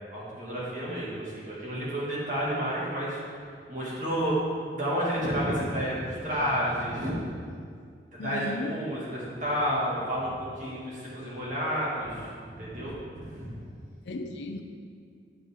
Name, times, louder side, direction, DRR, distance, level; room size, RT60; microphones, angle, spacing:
voice 1, 0.1-3.2 3.7-4.4 4.7-7.1 8.1-12.2 12.5-13.5, equal, 45° right, -7 dB, 2.0 m, -30 dB
voice 2, 8.2-8.7 14.0-14.6, left 1 dB, 75° left, 4 dB, 0.5 m, -35 dB
9.5 x 5.5 x 3.6 m, 2.2 s
head